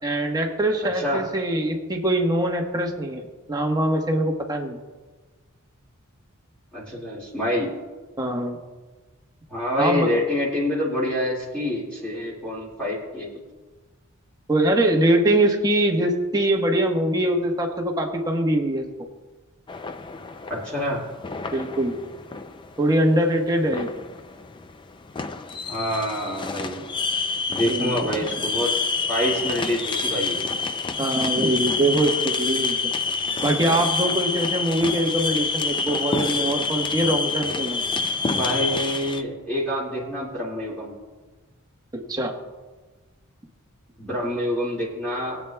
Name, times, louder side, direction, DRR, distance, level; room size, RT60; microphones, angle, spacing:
voice 1, 0.0-3.2 3.5-4.8 8.2-8.6 9.8-10.1 14.5-18.8 21.5-22.0 22.8-23.9 27.7-28.0 31.0-32.8 33.4-37.8 41.9-42.3, right 1 dB, 20° right, 2 dB, 1.2 m, -23 dB
voice 2, 6.7-7.7 9.5-13.3 20.5-21.0 25.7-26.8 27.5-28.7 29.1-30.4 38.2-40.9 44.0-45.4, left 1 dB, 5° left, -7 dB, 2.1 m, -26 dB
sound 1, 19.7-39.2, left 4 dB, 20° left, 0.4 m, -28 dB
22.5 x 8.4 x 2.3 m, 1.3 s
head